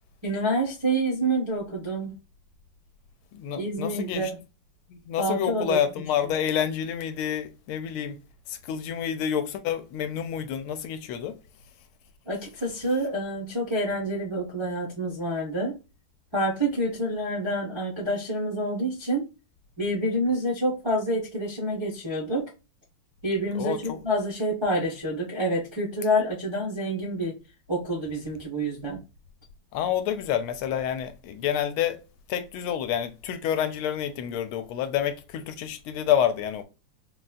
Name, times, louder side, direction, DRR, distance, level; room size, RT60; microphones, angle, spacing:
voice 1, 0.2-2.2 3.5-4.4 5.2-5.8 12.3-15.8 16.3-19.3 19.8-22.5 23.2-27.4 27.7-29.0, right 1 dB, 45° right, 0.3 m, -27 dB
voice 2, 3.3-4.3 4.9-8.2 8.5-11.4 23.5-24.0 29.7-32.0 32.3-36.6, left 9 dB, 80° left, 1.4 m, -28 dB
4.0 x 2.3 x 2.3 m
omnidirectional pair, 2.3 m